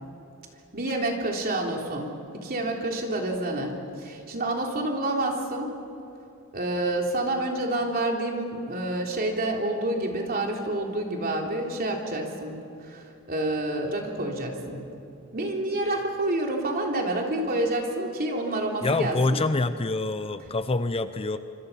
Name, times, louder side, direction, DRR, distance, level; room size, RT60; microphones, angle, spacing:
voice 1, 0.7-5.7 6.5-12.6 12.8-14.8 15.3-19.4, right 1 dB, 45° right, 0 dB, 3.6 m, -28 dB
voice 2, 18.8-21.4, left 2 dB, 25° left, 11 dB, 0.7 m, -26 dB
26.5 x 26.5 x 5.8 m, 2.8 s
head